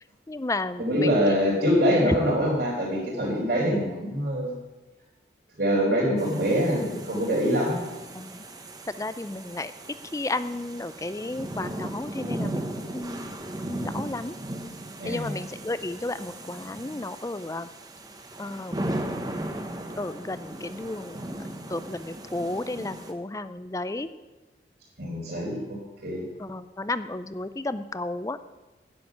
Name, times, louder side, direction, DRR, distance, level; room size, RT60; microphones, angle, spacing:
voice 1, 0.3-1.2 2.0-2.1 8.1-8.4 9.0-9.7 10.1-12.7 12.9-13.3 13.7-14.3 15.0-17.7 18.4-18.8 20.0-21.2 21.5-24.1 26.4-28.4, left 2 dB, 20° left, 13 dB, 0.4 m, -32 dB
voice 2, 0.8-4.6 5.6-7.8 15.0-15.3 25.0-26.2, equal, 60° right, -9 dB, 4.0 m, -24 dB
sound 1, 6.2-23.1, right 1 dB, 20° right, 1.1 m, -37 dB
10.5 x 7.6 x 9.3 m, 1.2 s
head